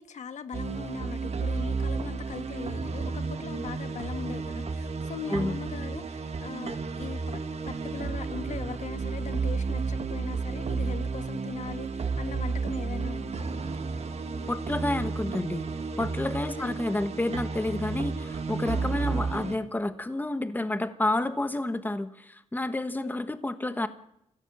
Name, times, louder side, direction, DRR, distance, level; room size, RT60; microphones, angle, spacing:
voice 1, 0.0-13.5 16.4-16.9 18.7-18.9 22.8-23.2, left 6 dB, 75° left, 10 dB, 1.4 m, -40 dB
sound 1, 0.5-19.6, right 4 dB, 60° right, 1.9 m, -32 dB
voice 2, 14.5-15.6 16.0-23.9, left 2 dB, 15° left, 11 dB, 1.2 m, -30 dB
24.0 x 16.0 x 7.6 m, 0.78 s
cardioid pair, 95°, 12 cm